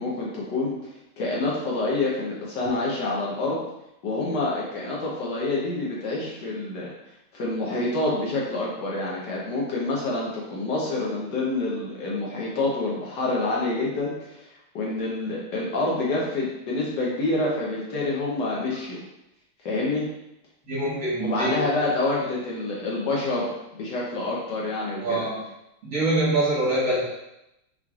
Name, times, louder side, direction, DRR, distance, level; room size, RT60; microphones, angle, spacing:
voice 1, 0.0-3.6 4.0-6.9 7.3-14.4 14.7-19.0 19.6-20.0 21.2-25.3, left 2 dB, 65° left, -4 dB, 1.4 m, -27 dB
voice 2, 20.7-21.6 25.0-25.4 25.8-27.0, right 2 dB, 45° right, -8 dB, 1.6 m, -24 dB
5.9 x 3.1 x 2.4 m, 0.88 s
omnidirectional pair, 2.2 m